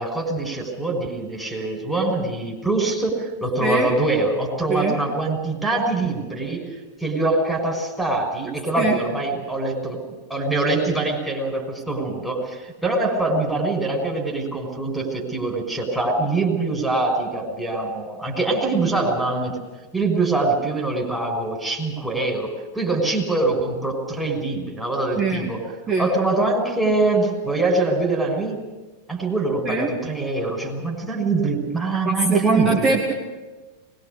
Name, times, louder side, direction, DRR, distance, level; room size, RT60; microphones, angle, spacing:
voice 1, 0.0-10.0 10.3-19.6 19.9-25.6 26.0-28.6 29.1-33.0, right 2 dB, ahead, 4 dB, 5.9 m, -24 dB
voice 2, 4.7-5.0 8.8-9.0 25.1-25.5 25.9-26.1 29.7-29.9 32.1-33.1, right 3 dB, 25° right, 0 dB, 2.5 m, -22 dB
22.5 x 21.5 x 6.8 m, 1.2 s
figure-of-eight pair, 90°, 0 cm